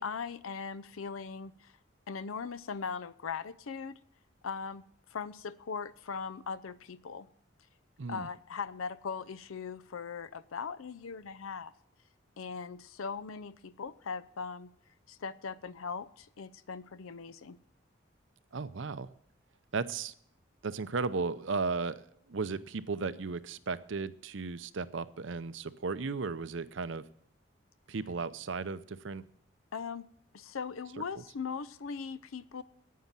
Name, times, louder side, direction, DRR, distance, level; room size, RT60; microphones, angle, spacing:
voice 1, 0.0-1.7 2.1-4.0 4.4-4.8 5.1-7.3 8.1-11.7 12.4-14.7 15.1-17.6 29.7-30.1 30.3-32.6, left 5 dB, 90° left, 16 dB, 0.6 m, -39 dB
voice 2, 8.0-8.3 18.5-19.1 19.7-20.1 20.6-27.1 27.9-29.3, right 4 dB, 70° right, 15 dB, 0.6 m, -35 dB
9.5 x 9.3 x 7.4 m, 0.67 s
head